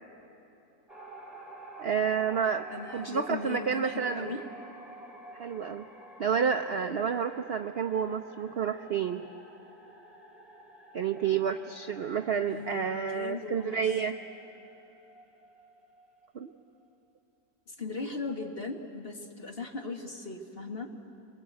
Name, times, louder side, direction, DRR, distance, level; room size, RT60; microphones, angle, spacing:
sound 1, 0.9-16.8, right 1 dB, ahead, 2.9 m, -50 dB
voice 1, 1.8-4.3 5.3-5.8 6.2-9.2 10.9-14.2 16.3-16.5, right 7 dB, 70° right, 7 dB, 0.5 m, -30 dB
voice 2, 2.7-4.4 12.5-12.8 13.1-13.8 17.7-20.9, left 3 dB, 35° left, 3 dB, 1.8 m, -38 dB
27.5 x 22.5 x 8.2 m, 3.0 s
omnidirectional pair, 1.9 m